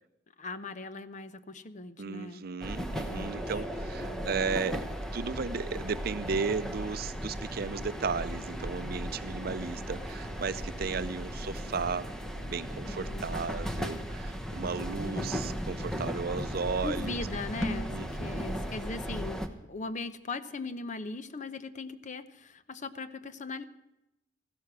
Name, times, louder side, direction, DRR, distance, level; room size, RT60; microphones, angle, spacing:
voice 1, 0.4-2.5 2.8-3.6 4.0-4.4 9.5-9.9 12.8-13.3 15.0-15.4 16.8-23.6, left 3 dB, 40° left, 12 dB, 0.7 m, -40 dB
voice 2, 2.0-4.9 5.1-12.1 12.4-17.2 17.9-18.5, right 5 dB, 55° right, 13 dB, 0.6 m, -35 dB
sound 1, 2.6-19.5, equal, 5° left, 1.0 m, -36 dB
15.0 x 12.5 x 6.0 m, 0.89 s
head